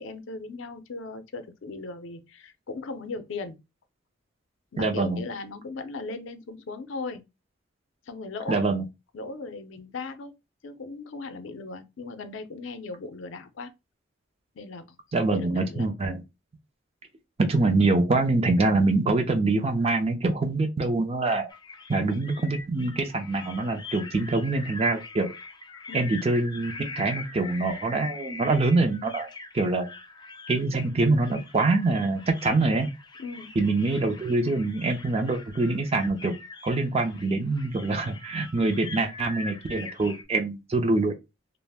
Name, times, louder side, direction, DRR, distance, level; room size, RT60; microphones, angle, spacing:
voice 1, 0.0-3.6 4.7-7.2 8.1-8.7 9.1-10.3 10.6-13.7 14.6-15.0 15.2-16.0 25.9-26.2 33.2-33.5, left 3 dB, 70° left, 0.5 m, -38 dB
voice 2, 4.8-5.2 8.5-8.8 15.1-16.2 17.4-21.5 21.9-25.3 25.9-29.3 29.5-29.9 30.5-32.9 33.6-36.4 36.6-41.1, right 3 dB, 30° right, 0.4 m, -25 dB
sound 1, 21.5-40.2, left 4 dB, 25° left, 0.5 m, -43 dB
2.4 x 2.0 x 3.4 m
head